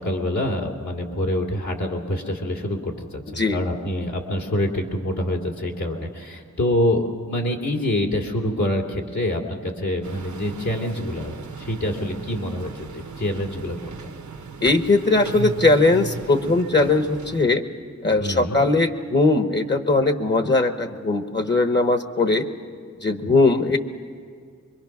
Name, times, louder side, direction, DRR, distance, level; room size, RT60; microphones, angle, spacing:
voice 1, 0.0-14.0 18.2-18.6, left 1 dB, 75° left, 0 dB, 2.5 m, -26 dB
sound 1, 10.0-17.4, right 5 dB, 80° right, 1.2 m, -36 dB
voice 2, 14.6-17.6 18.0-22.5 23.0-23.8, left 3 dB, 35° left, 7 dB, 1.1 m, -19 dB
24.5 x 22.5 x 5.9 m, 2.1 s
wide cardioid pair, 75°, 29 cm